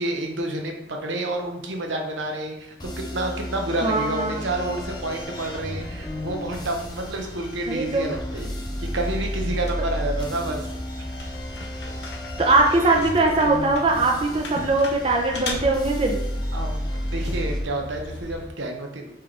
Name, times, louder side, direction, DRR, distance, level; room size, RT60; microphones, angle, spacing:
voice 1, 0.0-8.5 8.8-10.7 16.5-19.1, right 2 dB, 85° right, 2 dB, 0.8 m, -29 dB
sound 1, 2.8-17.6, left 1 dB, 20° left, 0.7 m, -32 dB
voice 2, 3.8-4.4 7.7-8.1 12.4-16.2, right 2 dB, 30° right, 1 dB, 0.5 m, -21 dB
sound 2, 4.5-18.5, left 2 dB, 65° left, 0.7 m, -39 dB
4.3 x 3.3 x 3.7 m, 0.82 s
head